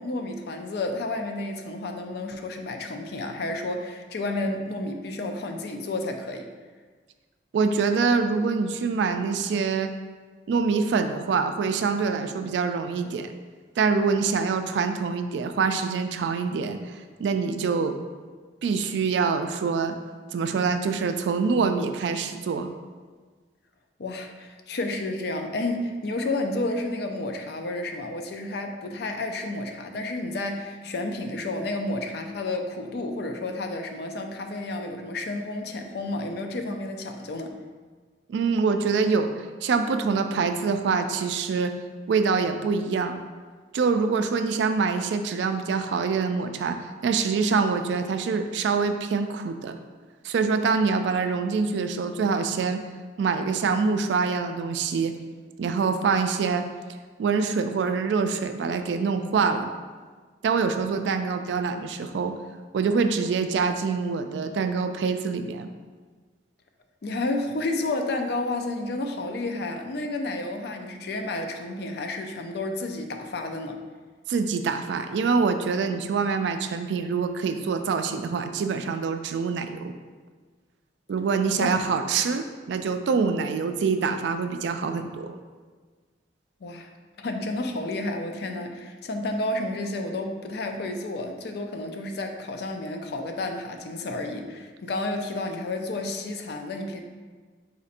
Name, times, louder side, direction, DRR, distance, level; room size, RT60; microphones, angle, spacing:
voice 1, 0.0-6.5 24.0-37.6 67.0-73.8 81.6-81.8 86.6-86.9 87.2-97.0, left 2 dB, 60° left, 5 dB, 0.4 m, -31 dB
voice 2, 7.5-9.9 10.5-13.3 13.8-17.9 18.6-20.0 20.3-22.7 38.3-41.8 42.1-43.2 43.7-49.8 50.2-52.8 53.2-55.1 55.6-56.7 57.2-59.7 60.4-62.4 62.7-65.7 74.3-79.9 81.1-85.4, right 5 dB, 75° right, 8 dB, 0.3 m, -25 dB
4.2 x 2.5 x 4.1 m, 1.4 s
head